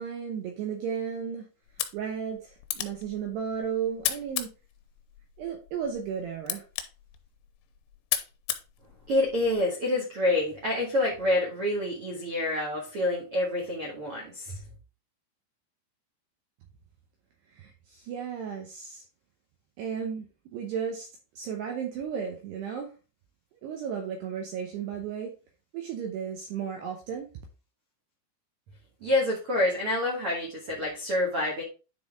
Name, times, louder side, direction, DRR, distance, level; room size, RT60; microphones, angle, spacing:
voice 1, 0.0-1.5 1.9-4.5 5.4-6.6 17.5-19.0 19.8-21.1 21.4-22.9 23.6-25.3 25.7-27.3, right 7 dB, 75° right, 3 dB, 2.7 m, -34 dB
sound 1, 1.6-9.6, left 12 dB, 80° left, 3.1 m, -37 dB
voice 2, 9.1-14.6 29.0-31.6, left 1 dB, 55° right, -3 dB, 1.6 m, -27 dB
9.9 x 4.2 x 3.6 m, 0.32 s
omnidirectional pair, 5.5 m